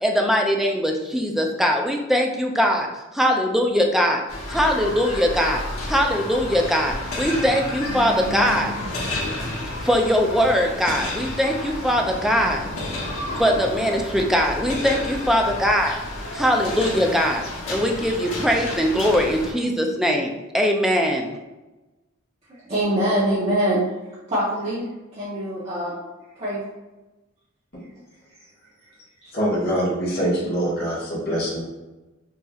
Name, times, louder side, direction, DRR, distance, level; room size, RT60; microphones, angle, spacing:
voice 1, 0.0-2.9 3.1-4.2 4.5-5.6 5.9-8.7 9.8-12.6 13.4-16.0 16.3-21.4, equal, ahead, 1 dB, 0.4 m, -21 dB
sound 1, 4.3-19.5, left 1 dB, 90° left, 1.1 m, -31 dB
voice 2, 22.5-23.8 24.3-26.0 26.4-26.6 29.2-29.3, right 1 dB, 30° right, -10 dB, 0.9 m, -24 dB
voice 3, 29.3-31.6, equal, 50° left, -7 dB, 1.5 m, -24 dB
5.5 x 2.7 x 2.4 m, 1.1 s
head